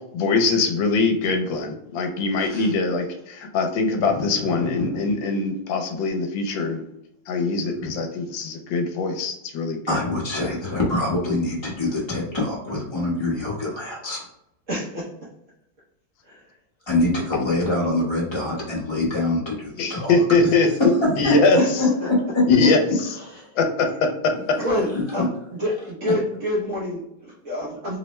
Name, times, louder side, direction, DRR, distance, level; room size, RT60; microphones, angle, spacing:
voice 1, 0.1-6.8 7.3-9.8 19.8-20.7 21.2-21.6 22.5-22.8 23.6-23.9, left 3 dB, 80° left, 4 dB, 1.3 m, -22 dB
voice 2, 2.3-2.7 4.0-5.1 7.7-7.9 9.9-14.2 16.9-20.5 21.2-22.7 23.3-23.4 24.7-24.8 25.2-25.3 26.0-26.1, left 2 dB, 25° left, -5 dB, 0.5 m, -25 dB
voice 3, 14.7-15.1 16.2-16.4 21.5-21.7 22.0-22.1 23.2-23.6 24.3-28.0, left 1 dB, 60° right, -6 dB, 0.8 m, -28 dB
3.4 x 2.1 x 2.9 m, 0.82 s
omnidirectional pair, 2.1 m